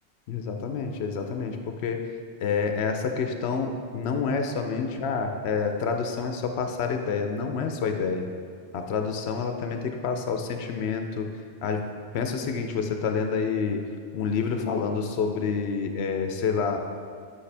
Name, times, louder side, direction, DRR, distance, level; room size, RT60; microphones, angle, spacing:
voice 1, 0.3-2.0 2.4-8.3 8.7-11.3 11.6-11.9 12.1-13.8 14.1-16.8, left 5 dB, 85° left, 5 dB, 0.9 m, -28 dB
8.3 x 5.5 x 3.3 m, 2.1 s
omnidirectional pair, 1.1 m